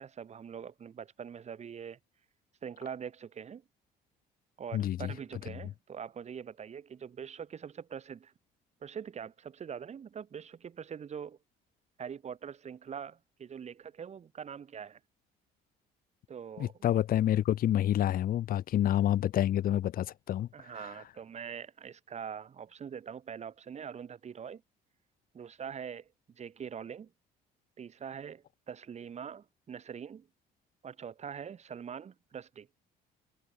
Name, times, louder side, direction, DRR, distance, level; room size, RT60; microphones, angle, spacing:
voice 1, 0.0-2.0 2.6-3.6 4.6-8.3 8.8-11.4 12.0-15.0 16.3-16.9 20.5-24.6 25.3-26.1 26.3-27.1 27.8-30.3 30.8-32.7, right 7 dB, 40° right, 4.5 m, -43 dB
voice 2, 4.7-5.1 16.6-20.5, left 12 dB, 60° left, 1.4 m, -28 dB
cardioid pair, 110°, 17 cm